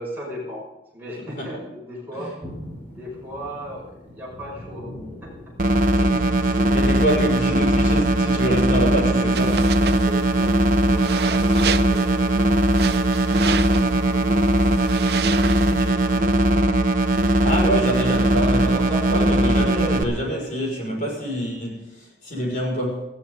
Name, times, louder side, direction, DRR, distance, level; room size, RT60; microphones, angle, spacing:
voice 1, 0.0-2.3 2.9-4.9 5.2-5.3 9.8-16.4, equal, 10° right, -6 dB, 6.3 m, -37 dB
sound 1, 2.4-10.1, equal, 10° left, 5.9 m, -39 dB
sound 2, 5.6-20.0, right 1 dB, 45° right, 1.1 m, -19 dB
voice 2, 5.9-9.6 17.3-23.1, equal, 45° left, -1 dB, 6.1 m, -26 dB
sound 3, 9.3-15.9, right 7 dB, 60° right, 0.7 m, -32 dB
19.5 x 14.5 x 4.0 m, 0.95 s
head